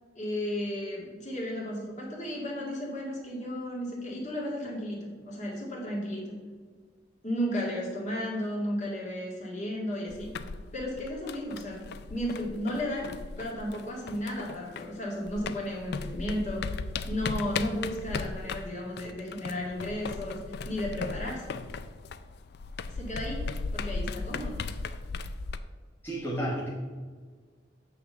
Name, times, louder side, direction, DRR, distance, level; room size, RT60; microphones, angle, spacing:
voice 1, 0.2-6.4 7.2-10.3 10.7-13.1 13.4-16.6 17.1-20.4 20.7-21.6 22.9-24.6, equal, 35° left, -2 dB, 1.9 m, -34 dB
sound 1, 10.1-15.0 15.3-25.6, left 4 dB, 55° left, 0.4 m, -37 dB
voice 2, 26.0-26.7, right 1 dB, 10° left, -6 dB, 1.2 m, -31 dB
8.4 x 3.5 x 6.6 m, 1.5 s
head